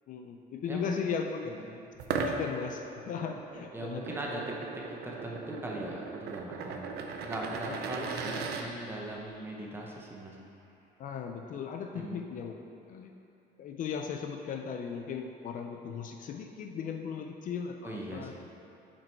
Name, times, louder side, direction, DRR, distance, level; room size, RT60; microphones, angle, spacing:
voice 1, 0.1-1.8 2.2-4.2 7.7-7.8 11.0-12.6 12.9-13.1 13.6-18.3, left 6 dB, 50° left, 4 dB, 0.4 m, -37 dB
sound 1, 2.0-8.6, right 5 dB, 65° right, 0.5 m, -38 dB
voice 2, 3.7-4.4 4.7-10.4 11.9-12.2 17.8-18.3, right 1 dB, 10° right, -2 dB, 0.7 m, -39 dB
sound 2, 8.0-11.3, left 2 dB, 65° left, 1.3 m, -55 dB
5.9 x 5.2 x 4.5 m, 2.6 s
cardioid pair, 165°, 18 cm